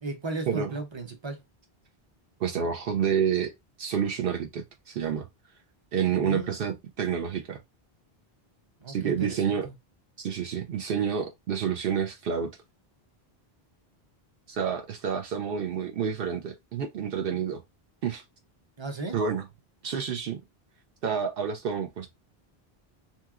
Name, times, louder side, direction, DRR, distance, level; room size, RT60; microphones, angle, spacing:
voice 1, 0.0-1.4 6.2-6.5 8.8-9.7 18.8-19.2, right 2 dB, 35° right, 0.6 m, -35 dB
voice 2, 2.4-3.5 3.8-5.3 5.9-7.6 8.9-9.7 10.2-12.5 14.5-17.6 18.0-18.2 19.1-19.4 19.8-20.4 21.0-22.1, right 7 dB, 70° right, 0.7 m, -29 dB
2.9 x 2.8 x 2.3 m
omnidirectional pair, 1.0 m